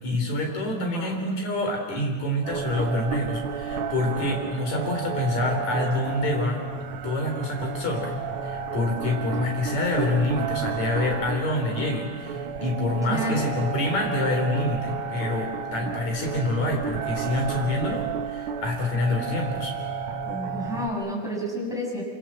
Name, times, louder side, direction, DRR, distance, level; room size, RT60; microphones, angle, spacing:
voice 1, 0.0-6.6 7.0-19.7, left 2 dB, 50° left, 2 dB, 5.3 m, -27 dB
voice 2, 0.7-1.2 13.1-13.4 15.8-15.9 20.3-22.0, equal, ahead, -3 dB, 7.3 m, -30 dB
sound 1, 2.4-20.9, right 6 dB, 80° right, 1.2 m, -32 dB
26.5 x 26.0 x 7.8 m, 1.5 s
omnidirectional pair, 4.0 m